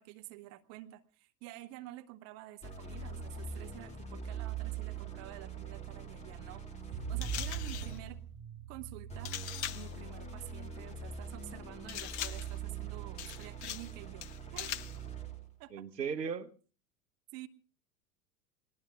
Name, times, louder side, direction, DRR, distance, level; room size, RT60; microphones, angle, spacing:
voice 1, 0.0-8.2 8.7-9.4 9.7-14.3 14.5-14.8 15.6-15.8 17.3-17.5, right 16 dB, 30° right, 10 dB, 0.8 m, -49 dB
sound 1, 2.6-8.2 9.1-15.5, right 6 dB, 15° left, 2.4 m, -42 dB
sound 2, 6.9-10.0, right 4 dB, 55° right, 6.8 m, -43 dB
sound 3, 7.2-8.0 9.2-9.9 11.9-12.6 13.2-13.9 14.2-15.0, left 12 dB, 45° left, 0.7 m, -41 dB
voice 2, 15.7-16.5, right 6 dB, 75° right, 10 dB, 1.1 m, -36 dB
29.0 x 19.5 x 2.4 m, 0.38 s
figure-of-eight pair, 85°, 50 cm